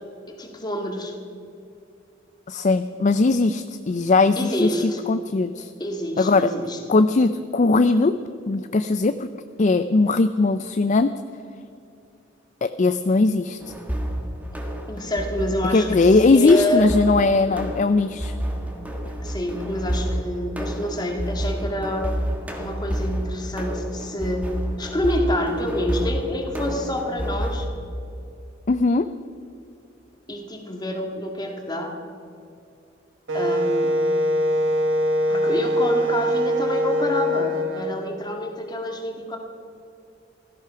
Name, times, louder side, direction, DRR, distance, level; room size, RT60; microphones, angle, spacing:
voice 1, 0.3-1.1 4.4-5.0 5.8-6.8 14.9-16.9 19.2-22.1 22.6-24.4 24.8-27.7 30.3-31.9 33.3-33.9 35.3-39.4, left 1 dB, 20° left, 2 dB, 2.0 m, -27 dB
voice 2, 2.5-5.7 6.2-6.5 6.9-8.2 8.5-9.3 9.6-11.1 12.6-13.6 15.7-18.3 28.7-29.1, left 3 dB, 40° left, 11 dB, 0.4 m, -19 dB
sound 1, 13.6-27.7, right 1 dB, 10° right, 1.7 m, -30 dB
Wind instrument woodwind instrument, 33.3-37.9, equal, 90° right, 1.4 m, -22 dB
16.0 x 13.5 x 5.8 m, 2.6 s
head